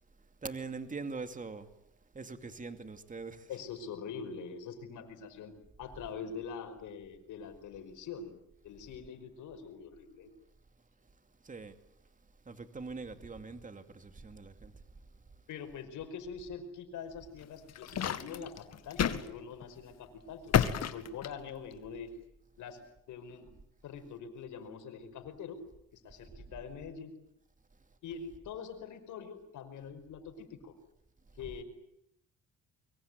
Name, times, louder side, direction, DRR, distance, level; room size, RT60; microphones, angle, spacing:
voice 1, 0.4-1.7 2.1-3.5 11.4-11.8 12.5-14.7, right 4 dB, 25° right, 2.6 m, -42 dB
voice 2, 3.5-8.4 8.6-10.3 15.5-22.1 22.6-22.8 23.1-23.5 23.8-25.6 25.9-27.2 28.0-30.7 31.3-31.6, left 6 dB, 80° left, 5.4 m, -44 dB
sound 1, 17.4-19.3 19.6-19.8 20.5-21.7, left 8 dB, 60° left, 2.1 m, -30 dB
24.5 x 24.0 x 9.4 m
cardioid pair, 90°, 30 cm